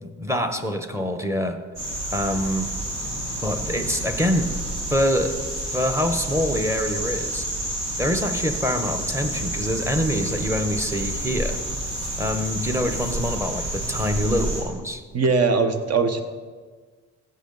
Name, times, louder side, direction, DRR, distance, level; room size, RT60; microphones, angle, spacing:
voice 1, 0.0-1.6 2.1-2.7 3.4-4.5 4.9-5.4 5.7-7.5 8.0-11.6 12.2-15.0, equal, 10° right, 7 dB, 1.1 m, -25 dB
sound 1, 1.8-14.6, right 1 dB, 85° right, 3.0 m, -29 dB
voice 2, 15.1-16.2, right 4 dB, 55° right, 8 dB, 1.1 m, -20 dB
16.5 x 6.6 x 4.0 m, 1.5 s
cardioid pair, 90°, 30 cm